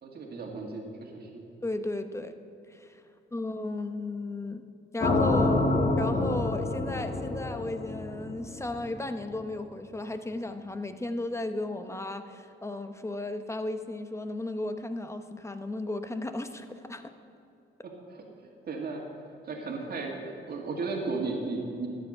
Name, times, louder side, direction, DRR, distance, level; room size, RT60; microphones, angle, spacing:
voice 1, 0.0-1.4 17.8-18.3 18.6-19.0 19.5-21.9, right 3 dB, 50° right, 0 dB, 2.0 m, -35 dB
voice 2, 1.6-2.3 2.7-3.0 3.3-4.6 4.9-5.7 6.0-17.1, left 2 dB, 15° left, 8 dB, 0.8 m, -35 dB
sound 1, 5.0-9.1, left 2 dB, 40° left, 1.8 m, -27 dB
13.0 x 9.0 x 5.6 m, 2.6 s
cardioid pair, 90°, 20 cm